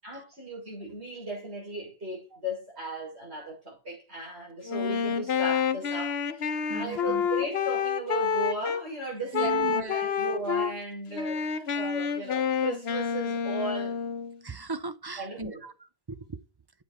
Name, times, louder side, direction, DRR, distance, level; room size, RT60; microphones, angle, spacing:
voice 1, 0.0-14.0 15.2-15.7, right 1 dB, 80° right, 6.7 m, -37 dB
Wind instrument woodwind instrument, 4.6-8.8 9.3-10.7 11.1-14.4, left 6 dB, 75° left, 1.1 m, -28 dB
voice 2, 6.7-7.2 9.3-10.0 14.4-15.7 16.1-16.4, right 4 dB, 25° right, 0.6 m, -36 dB
9.5 x 7.7 x 4.3 m
omnidirectional pair, 1.1 m